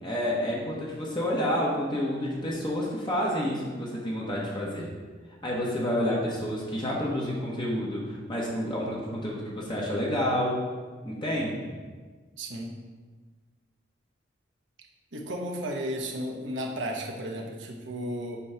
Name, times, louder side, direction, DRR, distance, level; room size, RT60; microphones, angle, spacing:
voice 1, 0.0-4.9 5.4-10.6 11.0-11.7, equal, 25° left, -4 dB, 1.1 m, -29 dB
voice 2, 12.4-12.8 15.1-18.4, equal, 70° right, 1 dB, 1.0 m, -34 dB
8.4 x 3.1 x 5.7 m, 1.4 s
head